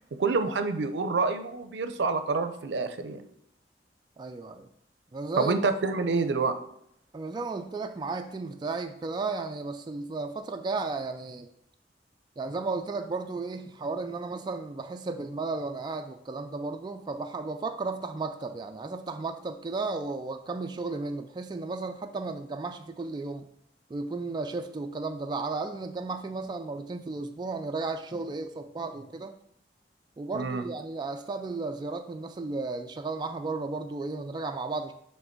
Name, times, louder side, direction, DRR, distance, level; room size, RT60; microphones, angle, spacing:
voice 1, 0.2-3.2 5.4-6.5 30.3-30.6, right 4 dB, 80° right, 9 dB, 0.5 m, -27 dB
voice 2, 4.2-4.7 5.1-5.6 7.1-11.5 12.4-23.5 23.9-29.3 30.2-34.9, right 3 dB, 25° right, 6 dB, 0.3 m, -34 dB
6.5 x 3.3 x 4.4 m, 0.72 s
head